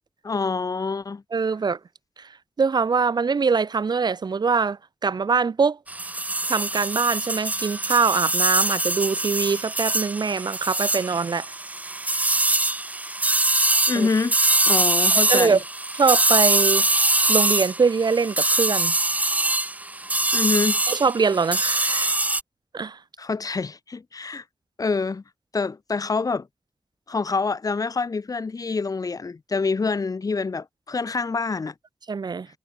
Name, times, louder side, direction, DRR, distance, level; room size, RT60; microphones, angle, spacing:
voice 1, 0.2-1.2 13.9-14.4 14.7-15.6 20.3-20.8 23.2-24.4 24.8-25.2 25.5-26.5 27.1-31.7, left 4 dB, 50° left, 2.0 m, -26 dB
voice 2, 1.3-1.8 2.2-2.3 2.6-5.8 6.5-11.5 13.9-14.1 15.1-15.6 16.0-16.9 17.3-18.9 20.9-22.2 22.7-23.0 32.1-32.5, right 5 dB, 65° right, 2.3 m, -23 dB
sound 1, 5.9-22.4, right 2 dB, 20° right, 0.7 m, -23 dB
wide cardioid pair, 125°, 8 cm